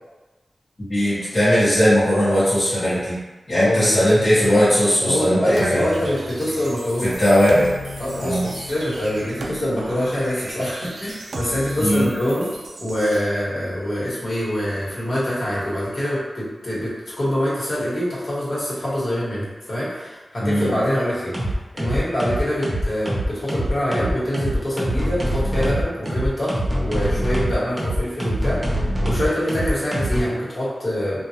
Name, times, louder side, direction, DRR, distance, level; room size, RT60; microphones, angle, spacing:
voice 1, 0.8-3.1 3.5-5.8 7.0-7.7 8.2-8.4 11.8-12.1 20.4-20.7, equal, 40° left, -13 dB, 1.2 m, -18 dB
voice 2, 3.5-4.1 5.0-7.1 8.0-12.5 12.8-21.3 21.7-31.3, equal, 55° left, -8 dB, 1.4 m, -24 dB
sound 1, 5.5-13.2, right 1 dB, 85° right, 0.4 m, -35 dB
sound 2, 20.6-20.9 21.3-30.2, right 1 dB, 25° right, 0.8 m, -24 dB
3.6 x 2.4 x 2.8 m, 1.2 s
wide cardioid pair, 85°, 0 cm